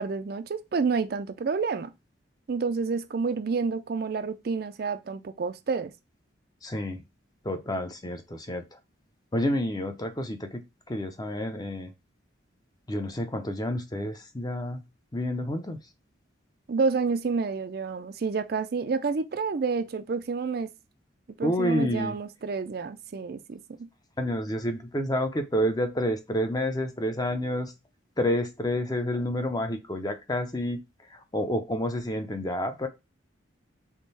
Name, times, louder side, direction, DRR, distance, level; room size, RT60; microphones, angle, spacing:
voice 1, 0.0-1.9 2.5-5.9 16.7-20.7 21.4-23.9, right 4 dB, 50° right, 0.4 m, -29 dB
voice 2, 6.6-7.0 7.4-8.6 9.3-11.9 12.9-14.8 15.1-15.8 21.4-22.2 24.2-27.7 28.2-30.8 31.1-32.9, left 1 dB, 20° left, 0.6 m, -29 dB
3.7 x 3.4 x 4.0 m
head